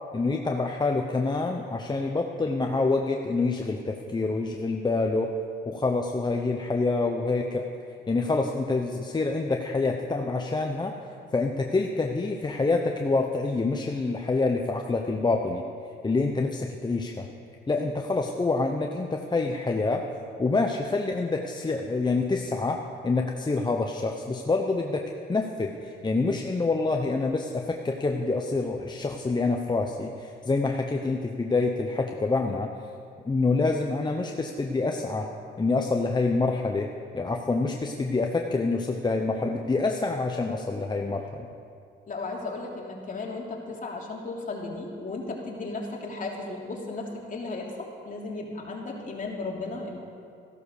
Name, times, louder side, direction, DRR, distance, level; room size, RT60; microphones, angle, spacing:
voice 1, 0.1-5.3 5.7-7.7 8.1-10.9 11.3-15.6 16.0-17.3 17.7-20.1 20.4-32.7 33.2-35.3 35.6-41.5, left 3 dB, 20° left, 2 dB, 1.0 m, -27 dB
voice 2, 42.1-50.0, left 3 dB, 40° left, -1 dB, 3.2 m, -35 dB
14.5 x 12.0 x 6.6 m, 2.4 s
cardioid pair, 90°, 20 cm